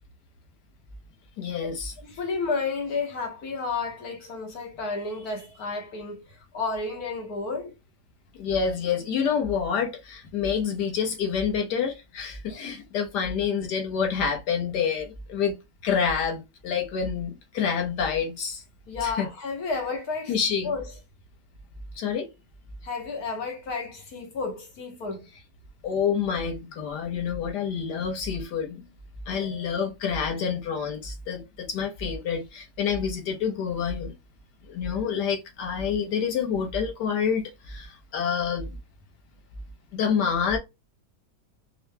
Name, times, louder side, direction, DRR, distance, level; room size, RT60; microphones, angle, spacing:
voice 1, 1.4-1.9 8.4-15.6 15.8-18.6 19.0-19.3 20.3-20.7 22.0-22.3 25.8-28.9 29.3-34.2 34.6-38.8 39.9-40.6, left 6 dB, 85° left, 1.6 m, -28 dB
voice 2, 2.2-7.7 18.9-20.3 20.6-20.9 22.8-25.3 29.3-29.6, left 4 dB, 70° left, 1.5 m, -31 dB
4.6 x 2.1 x 3.3 m
omnidirectional pair, 1.7 m